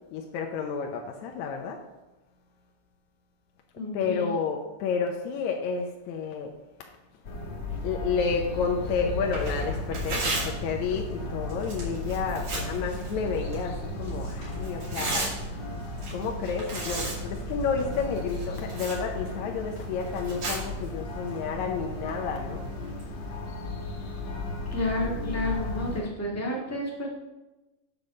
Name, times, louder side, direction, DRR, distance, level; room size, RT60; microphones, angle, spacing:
voice 1, 0.1-1.8 3.9-6.5 7.8-15.3 16.1-22.6, left 5 dB, 75° left, 2 dB, 1.9 m, -30 dB
voice 2, 3.8-4.3 24.7-27.1, left 1 dB, 15° left, -4 dB, 0.5 m, -31 dB
sound 1, 7.2-26.0, left 1 dB, 50° left, 1.9 m, -35 dB
Tearing, 9.2-23.1, right 3 dB, 45° right, 3.4 m, -38 dB
8.8 x 4.8 x 6.6 m, 1.1 s
omnidirectional pair, 3.8 m